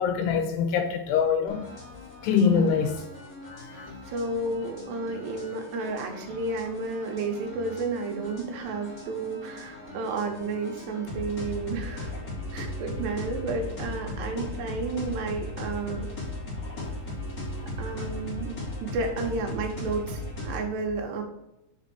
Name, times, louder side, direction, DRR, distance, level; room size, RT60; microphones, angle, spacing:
voice 1, 0.0-1.6 2.2-3.0 3.5-3.9, left 6 dB, 85° left, 2.9 m, -24 dB
sound 1, 1.5-20.7, left 1 dB, 25° left, 1.5 m, -38 dB
voice 2, 3.6-12.1 12.5-16.1 17.8-21.2, right 3 dB, 80° right, 3.3 m, -32 dB
6.8 x 4.0 x 6.1 m
omnidirectional pair, 4.9 m